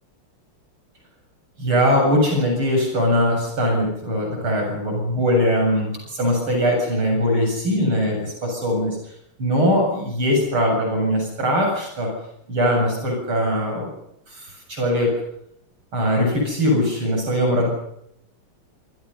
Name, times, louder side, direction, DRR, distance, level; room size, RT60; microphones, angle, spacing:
voice 1, 1.6-9.1 9.4-12.1 12.5-13.9 14.3-15.2 15.9-17.7, equal, 75° right, 1 dB, 8.6 m, -21 dB
27.0 x 26.0 x 5.7 m, 0.77 s
omnidirectional pair, 2.4 m